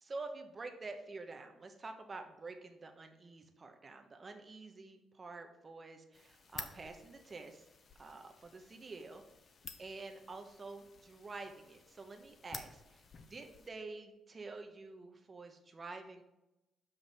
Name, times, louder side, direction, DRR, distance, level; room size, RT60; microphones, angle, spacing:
voice 1, 0.0-7.7 8.0-9.2 9.8-16.2, right 3 dB, 35° right, 5 dB, 0.9 m, -48 dB
sound 1, 6.1-13.7, left 5 dB, 45° left, 0.7 m, -53 dB
5.9 x 5.2 x 4.2 m, 0.95 s
cardioid pair, 90°, 0 cm